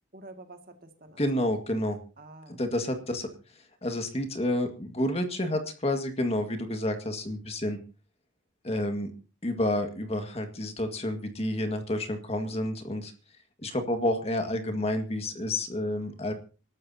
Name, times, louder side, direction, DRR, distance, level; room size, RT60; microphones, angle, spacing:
voice 1, 0.1-1.5 2.2-2.9, right 2 dB, 50° right, 6 dB, 2.1 m, -49 dB
voice 2, 1.2-2.0 2.5-3.3 3.5-7.8 8.6-9.1 9.4-13.1 13.6-16.3, left 1 dB, 30° left, 6 dB, 1.8 m, -29 dB
27.0 x 13.0 x 2.8 m, 0.35 s
head